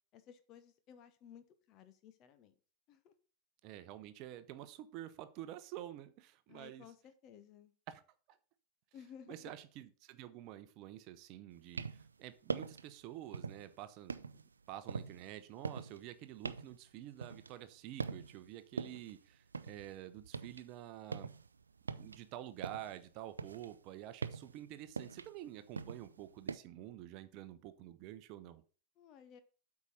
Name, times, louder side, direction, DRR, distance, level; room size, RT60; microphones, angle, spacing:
voice 1, 0.1-2.5 2.9-3.1 6.5-7.7 8.9-9.5 29.0-29.4, left 8 dB, 35° left, 10 dB, 1.1 m, -57 dB
voice 2, 3.6-6.9 7.9-8.0 9.3-14.2 14.7-21.3 21.9-28.6, right 13 dB, 40° right, 12 dB, 0.8 m, -49 dB
sound 1, 11.5-12.1 12.5-12.9 13.3-13.7 14.1-17.7 18.0-18.5 18.8-20.7 21.0-23.0 23.3-26.6, right 5 dB, 75° right, 0.4 m, -43 dB
8.3 x 4.9 x 5.5 m, 0.38 s
figure-of-eight pair, 90°, 0 cm